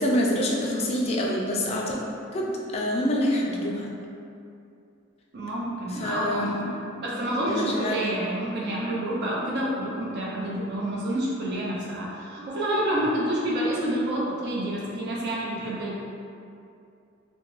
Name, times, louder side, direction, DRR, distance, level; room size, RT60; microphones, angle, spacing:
voice 1, 0.0-2.0 2.3-3.9 5.9-7.0 7.5-8.0, left 1 dB, 30° left, -2 dB, 0.3 m, -26 dB
voice 2, 5.3-6.7 7.0-16.0, right 1 dB, 55° right, -5 dB, 0.7 m, -28 dB
3.3 x 2.1 x 3.1 m, 2.6 s
head